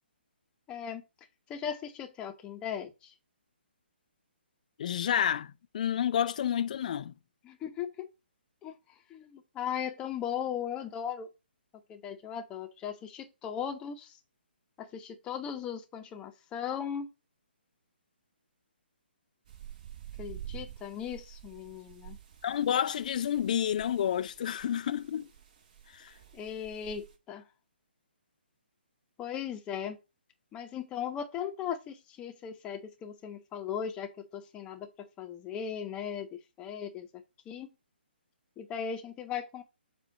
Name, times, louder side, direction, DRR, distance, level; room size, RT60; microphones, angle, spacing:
voice 1, 0.7-1.0 1.5-3.1 7.4-8.1 8.6-8.7 9.1-11.3 11.9-14.1 14.8-17.1 20.2-22.2 26.3-27.4 29.2-30.0 30.5-37.7 38.6-39.6, left 8 dB, 15° left, 0.8 m, -38 dB
voice 2, 4.8-7.1 22.4-25.3 25.9-26.1, left 9 dB, 45° left, 0.4 m, -30 dB
sound 1, 19.5-27.2, right 11 dB, 40° right, 1.2 m, -49 dB
7.3 x 2.5 x 5.7 m
figure-of-eight pair, 135°, 6 cm